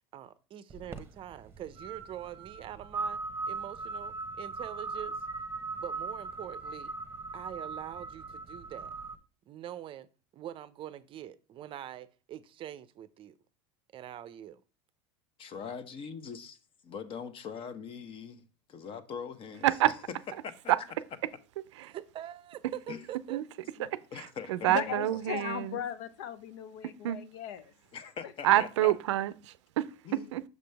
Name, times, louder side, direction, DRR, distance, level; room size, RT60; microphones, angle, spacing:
voice 1, 0.1-3.2 3.5-5.2 5.8-6.9 7.3-8.9 9.5-10.1 10.3-13.3 13.9-14.6 21.8-23.4, right 11 dB, 35° right, 0.5 m, -44 dB
sound 1, 0.7-9.2, right 3 dB, 15° right, 0.9 m, -39 dB
voice 2, 15.4-16.6 16.8-19.7 20.4-20.7 22.9-23.0 24.1-25.0 27.9-28.9 30.0-30.3, left 6 dB, 40° left, 0.9 m, -42 dB
voice 3, 23.8-25.8 27.0-27.2 28.4-30.4, right 14 dB, 85° right, 0.5 m, -28 dB
voice 4, 24.7-27.7 28.2-28.6, left 9 dB, 70° left, 0.7 m, -38 dB
6.5 x 5.1 x 3.4 m
supercardioid pair, 110°, 15 cm